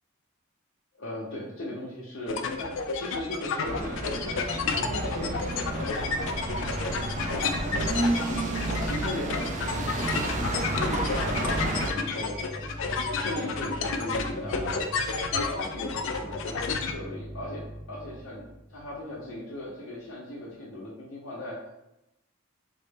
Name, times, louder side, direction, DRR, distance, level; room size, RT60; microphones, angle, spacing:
voice 1, 0.9-6.6 7.3-7.7 8.6-12.4 13.1-15.0 15.3-18.4 18.7-21.8, left 1 dB, 80° left, -7 dB, 0.7 m, -38 dB
sound 1, 2.3-16.9, left 4 dB, 65° left, 0.3 m, -31 dB
sound 2, 3.6-11.9, right 2 dB, 35° right, 0.4 m, -31 dB
sound 3, 6.5-19.6, right 1 dB, 50° left, 0.9 m, -42 dB
3.9 x 2.0 x 3.5 m, 0.90 s
head